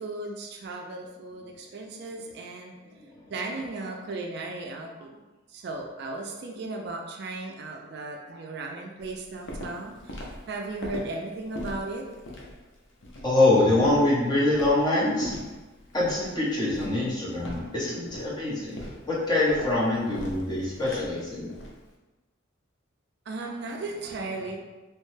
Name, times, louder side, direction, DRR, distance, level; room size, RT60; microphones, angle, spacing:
voice 1, 0.0-2.7 3.3-5.2 5.5-12.1 17.6-17.7 23.3-24.6, right 2 dB, 55° right, 1 dB, 0.3 m, -36 dB
Walk footsteps, 9.0-21.8, left 1 dB, 70° left, 0.6 m, -40 dB
voice 2, 13.2-15.3 15.9-21.5, left 2 dB, 20° left, -7 dB, 0.8 m, -24 dB
3.0 x 2.1 x 3.1 m, 1.1 s
head